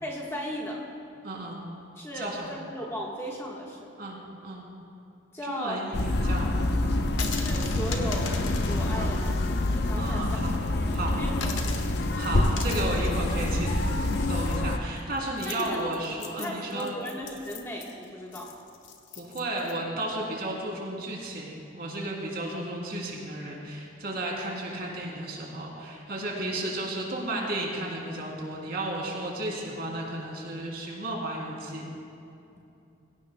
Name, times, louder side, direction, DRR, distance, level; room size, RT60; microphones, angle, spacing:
voice 1, 0.0-0.8 2.0-3.9 5.3-5.8 7.3-10.3 11.2-11.8 15.4-15.8 16.3-18.5 19.8-19.9, equal, 15° left, -3 dB, 1.3 m, -36 dB
voice 2, 1.2-1.6 2.1-2.6 4.0-4.7 5.4-6.6 8.9-9.2 10.0-10.7 10.9-11.3 12.1-13.7 14.3-16.9 19.2-31.9, right 1 dB, 50° right, -2 dB, 3.0 m, -33 dB
sound 1, 5.9-14.8, left 1 dB, 55° left, 0.7 m, -27 dB
sound 2, 7.1-10.5 10.8-10.9 11.4-19.7, left 6 dB, 75° left, 1.3 m, -41 dB
22.5 x 17.0 x 2.2 m, 2.7 s
head